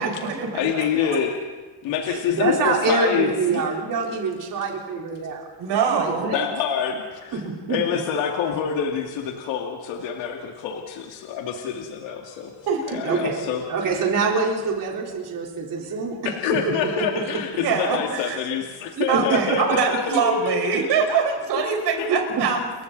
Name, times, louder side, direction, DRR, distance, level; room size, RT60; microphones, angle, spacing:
voice 1, 0.0-1.2 5.6-6.3 12.6-13.2 16.1-16.2 17.6-18.4 19.1-22.6, right 6 dB, 60° right, 2 dB, 5.2 m, -24 dB
voice 2, 0.5-1.4 1.8-3.6 4.1-4.2 6.2-7.4 7.7-12.5 12.9-13.9 16.2-20.9 22.0-22.2, left 7 dB, 80° left, 1 dB, 2.4 m, -26 dB
voice 3, 2.1-5.5 5.9-6.5 7.3-7.8 13.0-13.3 13.7-16.2 16.5-17.1 19.0-20.0 22.3-22.4, right 4 dB, 45° right, -1 dB, 4.1 m, -25 dB
30.0 x 23.0 x 4.1 m, 1.4 s
cardioid pair, 120°, 45 cm